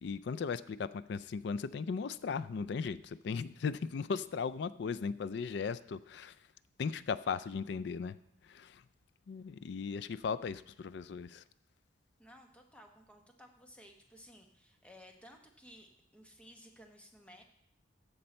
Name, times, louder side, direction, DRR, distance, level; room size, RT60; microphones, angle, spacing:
voice 1, 0.0-6.4 6.8-8.2 8.4-8.8 9.3-11.4, left 5 dB, 60° left, 16 dB, 0.3 m, -37 dB
voice 2, 12.2-17.4, equal, 5° left, 3 dB, 0.9 m, -57 dB
14.5 x 5.4 x 4.3 m, 0.73 s
head